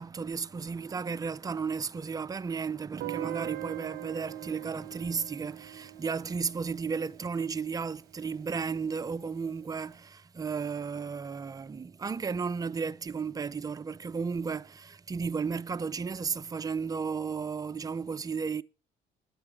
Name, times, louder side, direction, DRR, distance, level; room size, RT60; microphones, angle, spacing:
voice 1, 0.0-18.6, right 5 dB, 20° right, 0.4 m, -34 dB
Guitar, 3.0-7.9, right 13 dB, 65° right, 0.8 m, -41 dB
9.6 x 7.7 x 4.6 m
cardioid pair, 110°, 17 cm